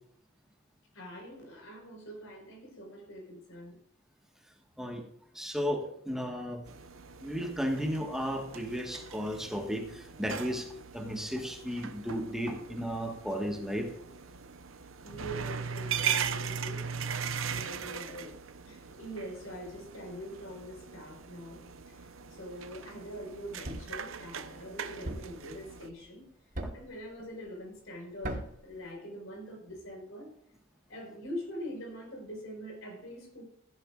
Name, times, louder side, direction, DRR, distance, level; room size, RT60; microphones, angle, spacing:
voice 1, 0.9-3.8 15.0-18.4 18.7-26.3 26.7-30.3 30.9-33.4, equal, 80° left, 4.6 m, -44 dB
voice 2, 5.3-6.6 7.2-10.7 10.9-13.9 26.6-26.7, equal, ahead, 1.5 m, -34 dB
sound 1, 6.7-25.9, right 7 dB, 75° right, 0.9 m, -39 dB
Thump thud, 23.6-24.0 25.1-25.4 26.6-27.0 28.2-28.6, right 1 dB, 45° right, 1.4 m, -38 dB
16.0 x 10.5 x 2.5 m
head